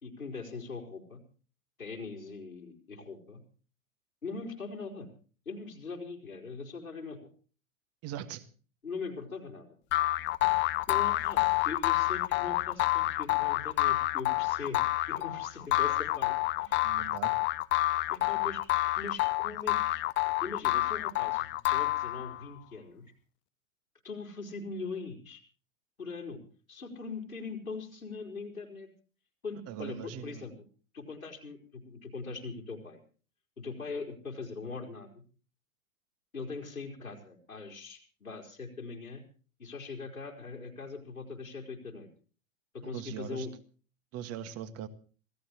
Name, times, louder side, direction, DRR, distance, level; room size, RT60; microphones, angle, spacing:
voice 1, 0.0-1.2 1.8-3.4 4.2-5.1 5.5-7.3 8.8-9.8 10.9-16.9 18.1-18.6 19.0-20.0 20.4-23.1 24.0-25.4 26.0-26.4 26.7-28.9 29.4-30.5 30.9-33.0 33.6-35.1 36.3-39.2 39.6-42.1 42.7-43.6, left 4 dB, 85° left, 0 dB, 4.4 m, -41 dB
voice 2, 8.0-8.5 16.8-17.4 29.7-30.5 42.8-43.5 44.1-44.9, right 10 dB, 35° right, 11 dB, 1.8 m, -40 dB
sound 1, 9.9-22.4, left 19 dB, 30° left, 0.7 m, -28 dB
26.5 x 17.0 x 3.0 m, 0.39 s
figure-of-eight pair, 90°, 41 cm